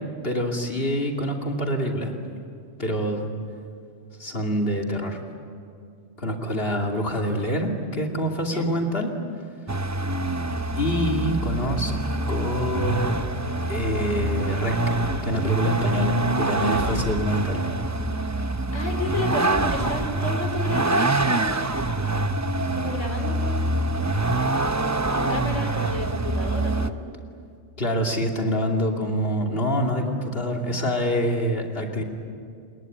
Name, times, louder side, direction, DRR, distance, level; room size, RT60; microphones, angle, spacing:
voice 1, 0.2-2.1 2.8-3.3 4.2-5.2 6.2-9.2 10.7-11.9 12.3-13.2 13.7-14.8 15.2-17.7 27.8-32.0, equal, 45° left, 2 dB, 3.0 m, -26 dB
Vehicle, 9.7-26.9, right 2 dB, 15° right, 0.6 m, -25 dB
Bowed string instrument, 11.6-16.8, left 3 dB, 90° left, 2.7 m, -41 dB
voice 2, 18.4-21.8 22.7-24.1 25.1-26.9, left 2 dB, 70° left, 4 dB, 4.0 m, -32 dB
28.5 x 21.0 x 9.3 m, 2.3 s
omnidirectional pair, 1.3 m